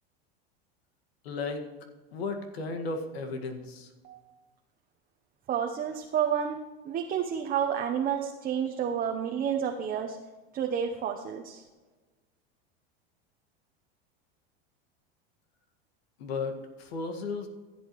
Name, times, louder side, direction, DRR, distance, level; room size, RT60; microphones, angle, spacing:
voice 1, 1.2-1.6 2.1-3.9 16.2-17.5, left 3 dB, 85° left, 6 dB, 1.9 m, -34 dB
voice 2, 5.5-6.6 6.8-10.2 10.5-11.6, right 8 dB, 30° right, 4 dB, 0.9 m, -30 dB
15.5 x 8.0 x 3.1 m, 1.3 s
supercardioid pair, 120°, 30 cm